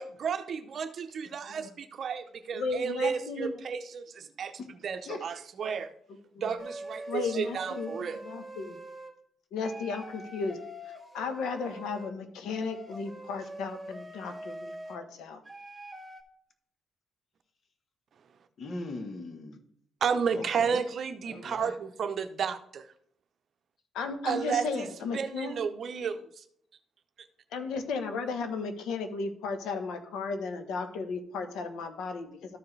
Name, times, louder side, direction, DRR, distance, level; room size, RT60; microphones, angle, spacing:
voice 1, 0.0-4.5 4.8-5.9 6.4-8.2 20.0-22.9 24.3-24.9 25.1-26.2, right 6 dB, 55° right, 9 dB, 0.7 m, -32 dB
voice 2, 2.5-3.6 6.3-6.6 7.1-8.8 9.5-10.6 10.8-15.4 23.9-25.5 27.5-32.6, left 4 dB, 85° left, 7 dB, 1.1 m, -35 dB
sound 1, 6.6-9.1 9.6-12.1 12.5-15.0 15.5-16.2, right 1 dB, 10° right, 1.2 m, -44 dB
voice 3, 18.6-19.6 20.3-20.8 21.3-21.8, left 2 dB, 50° left, 7 dB, 1.2 m, -39 dB
13.5 x 4.8 x 3.3 m, 0.66 s
cardioid pair, 90°, 0 cm